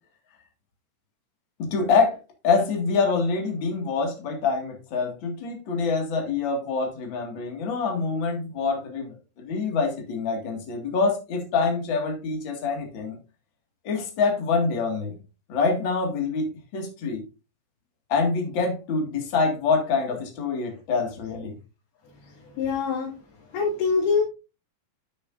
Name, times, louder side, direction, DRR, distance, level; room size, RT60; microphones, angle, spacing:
voice 1, 1.6-13.2 13.8-15.1 15.5-17.2 18.1-21.6, left 4 dB, 40° left, 2 dB, 1.8 m, -25 dB
voice 2, 22.6-23.1 23.5-24.2, left 5 dB, 70° left, -6 dB, 4.0 m, -24 dB
11.5 x 6.3 x 2.5 m, 0.30 s
omnidirectional pair, 4.7 m